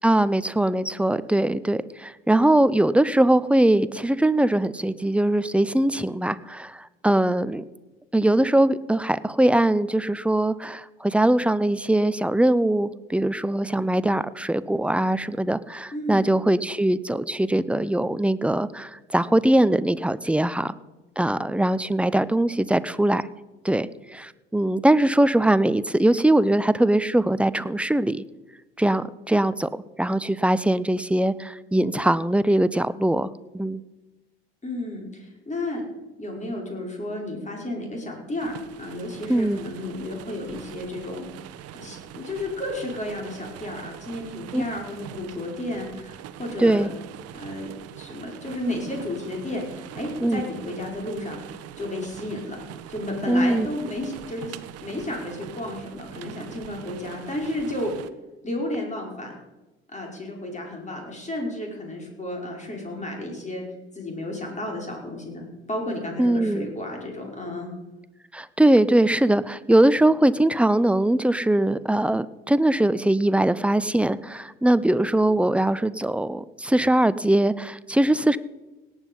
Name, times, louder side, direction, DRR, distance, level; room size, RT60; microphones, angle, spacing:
voice 1, 0.0-7.6 8.1-20.7 21.2-23.3 23.6-28.2 28.8-33.3 33.5-33.8 39.3-39.6 44.5-44.6 46.6-46.9 50.2-50.4 53.3-53.7 66.2-66.7 68.3-78.4, right 1 dB, 5° right, 16 dB, 0.6 m, -21 dB
voice 2, 15.9-16.3 34.6-35.8 36.2-38.5 38.8-41.3 41.8-46.9 47.3-51.4 51.8-52.6 52.9-57.9 58.4-59.3 59.9-63.6 63.9-67.7, left 1 dB, 25° left, 0 dB, 5.1 m, -32 dB
sound 1, 38.4-58.1, right 11 dB, 55° right, 0.9 m, -42 dB
17.5 x 9.8 x 5.5 m, 1.1 s
hypercardioid pair, 55°, 30 cm